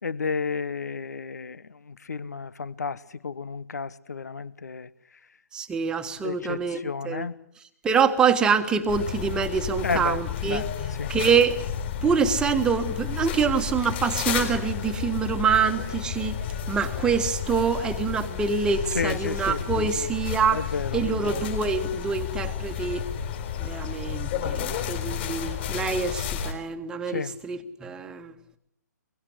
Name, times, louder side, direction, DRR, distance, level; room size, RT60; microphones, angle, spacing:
voice 1, 0.0-4.9 6.2-7.3 9.8-10.7 11.0-11.2 18.9-19.7 20.5-21.0 27.1-27.4, left 5 dB, 60° left, 1.1 m, -32 dB
voice 2, 5.5-7.3 7.8-10.6 11.1-11.6 12.0-20.6 20.9-23.0 23.6-28.3, right 6 dB, 10° right, 1.5 m, -25 dB
sound 1, 8.9-26.5, left 8 dB, 35° left, 5.0 m, -31 dB
23.5 x 22.5 x 8.0 m
figure-of-eight pair, 135°, 10 cm